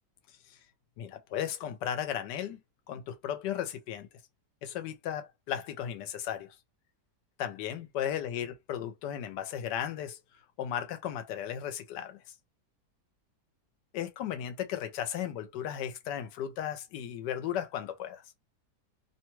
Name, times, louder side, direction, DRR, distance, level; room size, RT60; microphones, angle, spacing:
voice 1, 1.0-2.6 2.9-4.1 4.6-6.6 7.4-10.2 10.6-12.2 13.9-18.2, left 10 dB, 90° left, 1.2 m, -35 dB
2.9 x 2.2 x 2.9 m
omnidirectional pair, 1.8 m